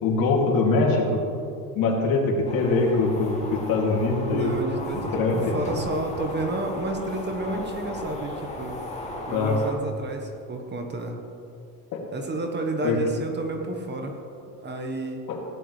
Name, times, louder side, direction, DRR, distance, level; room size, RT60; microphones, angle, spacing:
voice 1, 0.0-1.2 1.8-4.6 4.9-5.4 9.3-9.6 11.9-12.0 12.8-13.0 15.3-15.4, left 3 dB, 55° left, -1 dB, 2.6 m, -23 dB
sound 1, 2.4-9.7, left 1 dB, 15° left, 2.4 m, -36 dB
voice 2, 4.3-8.8 9.3-11.2 12.1-14.2 14.6-15.3, right 2 dB, 25° right, 4 dB, 1.3 m, -31 dB
16.5 x 10.0 x 3.3 m, 2.5 s
supercardioid pair, 115°, 41 cm